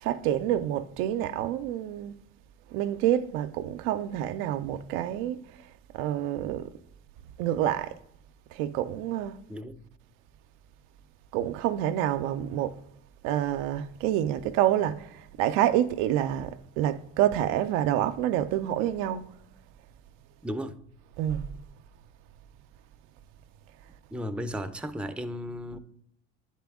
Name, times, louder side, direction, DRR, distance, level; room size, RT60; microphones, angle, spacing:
voice 1, 0.0-2.2 2.7-5.4 5.9-6.7 7.4-8.0 8.5-9.3 11.3-12.8 13.2-19.3 21.2-21.5, right 12 dB, 80° right, 0.5 m, -27 dB
voice 2, 9.5-9.8 20.4-20.8 24.1-25.8, equal, 5° right, 0.5 m, -35 dB
10.0 x 4.3 x 3.5 m
supercardioid pair, 65°, 32 cm